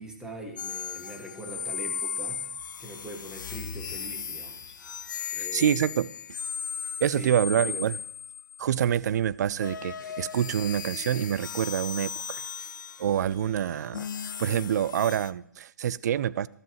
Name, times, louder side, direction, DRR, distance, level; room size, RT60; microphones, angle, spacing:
voice 1, 0.0-2.5 2.8-4.7 5.3-5.8 7.1-7.8 10.0-10.2, equal, 5° right, 1.9 m, -42 dB
sound 1, 0.6-8.9 9.6-15.3, left 7 dB, 80° left, 0.5 m, -36 dB
voice 2, 5.4-6.1 7.0-8.0 8.6-12.4 13.0-14.1 14.4-16.5, right 10 dB, 60° right, 0.4 m, -26 dB
13.0 x 12.5 x 3.1 m
hypercardioid pair, 140°, 10 cm